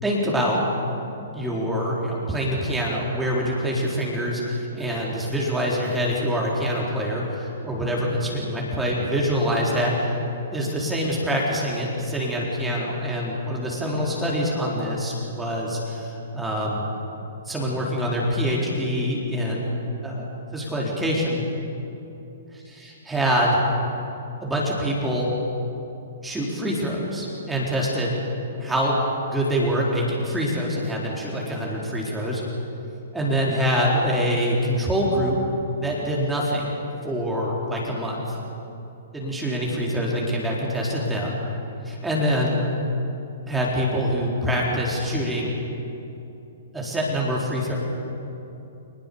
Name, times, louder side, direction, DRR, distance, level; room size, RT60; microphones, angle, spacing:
voice 1, 0.0-0.6 1.3-10.1 10.5-16.9 17.5-20.3 20.5-21.4 22.7-23.6 24.4-25.3 26.2-28.1 28.6-29.0 29.3-32.4 33.1-35.4 35.8-36.8 37.0-38.2 39.1-41.4 41.8-42.6 43.5-45.5 46.7-47.8, equal, 5° right, -4 dB, 4.1 m, -25 dB
26.5 x 20.5 x 7.0 m, 2.9 s
figure-of-eight pair, 115°, 0 cm